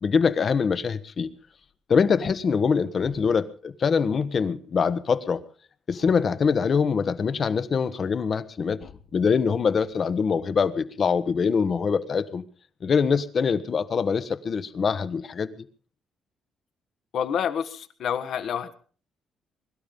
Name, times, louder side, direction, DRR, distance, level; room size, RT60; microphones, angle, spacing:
voice 1, 0.0-1.3 1.9-5.4 5.9-12.4 12.8-15.6, left 6 dB, 45° left, 1.3 m, -24 dB
voice 2, 17.1-18.7, left 8 dB, 70° left, 1.6 m, -28 dB
22.5 x 12.0 x 5.4 m
cardioid pair, 90°, 0 cm